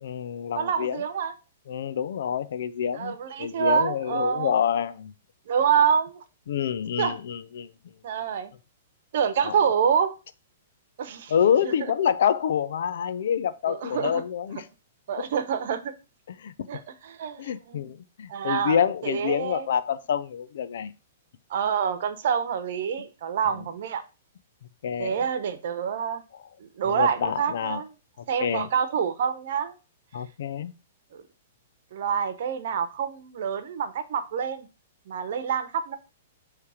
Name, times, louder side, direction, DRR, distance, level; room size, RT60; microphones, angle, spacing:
voice 1, 0.0-1.0 1.7-5.1 6.5-7.7 9.4-9.6 11.3-14.6 16.4-16.5 17.4-20.9 24.8-25.2 26.9-27.8 28.4-28.7 30.1-30.7, left 8 dB, 70° left, 0.6 m, -27 dB
voice 2, 0.6-1.3 2.9-4.5 5.5-6.2 7.0-7.2 8.0-8.5 9.1-10.1 11.0-11.3 11.6-11.7 13.7-14.2 15.1-15.9 16.7-17.9 18.3-19.7 21.5-24.0 25.0-26.2 26.6-27.9 28.3-29.7 31.1-31.2 31.9-34.7 35.1-36.0, right 7 dB, 65° right, 1.0 m, -27 dB
6.9 x 3.3 x 4.9 m
hypercardioid pair, 135°, 0 cm